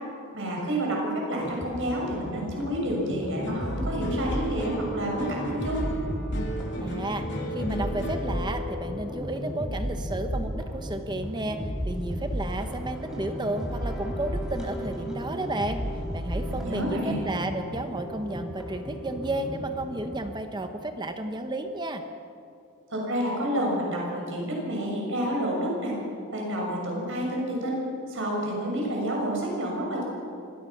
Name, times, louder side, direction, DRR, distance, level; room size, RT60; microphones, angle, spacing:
voice 1, 0.3-5.8 16.5-17.2 22.9-25.9 26.3-30.0, equal, 55° right, -2 dB, 6.9 m, -29 dB
sound 1, 1.4-20.3, equal, 5° right, 4.2 m, -34 dB
sound 2, 3.4-11.9 12.2-12.9, left 1 dB, 55° left, 3.0 m, -37 dB
voice 2, 6.8-7.3 7.5-11.6 11.9-15.8 16.1-22.0, right 2 dB, 20° right, 7 dB, 1.0 m, -32 dB
24.5 x 19.0 x 6.0 m, 2.5 s
head